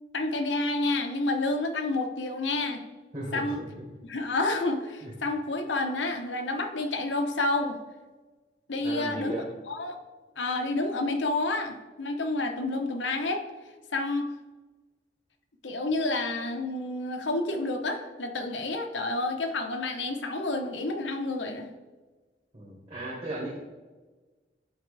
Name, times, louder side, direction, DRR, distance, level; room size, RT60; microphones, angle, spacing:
voice 1, 0.1-2.8 3.3-3.6 4.1-7.8 8.7-10.0 10.4-13.4 13.9-14.3 15.6-21.7, left 2 dB, 85° left, 5 dB, 0.9 m, -29 dB
voice 2, 3.1-3.7 5.0-5.1 8.8-9.5 22.5-23.6, right 1 dB, 35° right, -7 dB, 1.7 m, -36 dB
11.0 x 4.5 x 3.4 m, 1.3 s
head